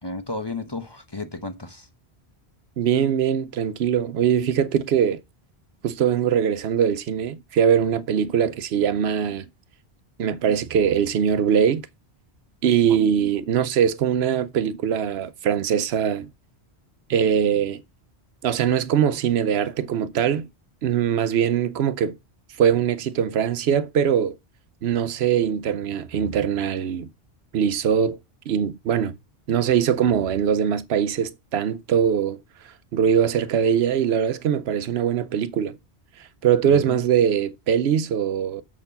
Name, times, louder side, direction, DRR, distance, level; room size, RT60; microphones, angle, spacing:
voice 1, 0.0-1.9 36.7-37.0, left 3 dB, 25° left, 1.0 m, -33 dB
voice 2, 2.8-5.2 5.8-9.5 10.2-11.8 12.6-16.3 17.1-17.8 18.4-20.5 20.8-22.2 22.6-24.3 24.8-27.1 27.5-28.2 28.5-29.1 29.5-32.4 32.9-35.8 36.4-38.6, right 8 dB, 75° right, 0.9 m, -22 dB
7.2 x 4.4 x 6.8 m
omnidirectional pair, 1.1 m